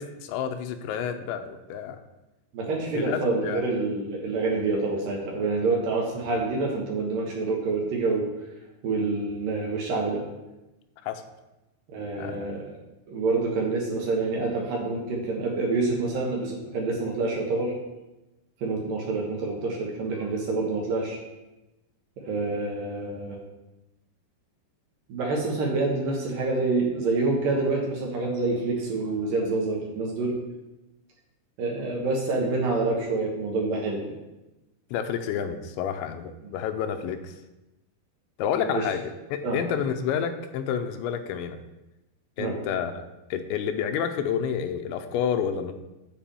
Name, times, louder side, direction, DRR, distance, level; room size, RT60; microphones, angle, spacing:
voice 1, 0.0-2.0 2.9-3.6 11.0-11.2 12.2-12.5 34.9-37.4 38.4-41.6 42.4-42.9 43.3-45.7, left 8 dB, 85° left, 6 dB, 2.9 m, -29 dB
voice 2, 2.5-8.3 8.8-10.2 11.9-12.7 13.1-17.7 18.6-21.2 22.3-23.4 25.1-30.4 31.6-34.0 38.6-38.9 39.4-39.6 42.4-42.5, right 3 dB, 65° right, -2 dB, 2.4 m, -27 dB
7.4 x 4.9 x 6.9 m, 1.0 s
omnidirectional pair, 5.1 m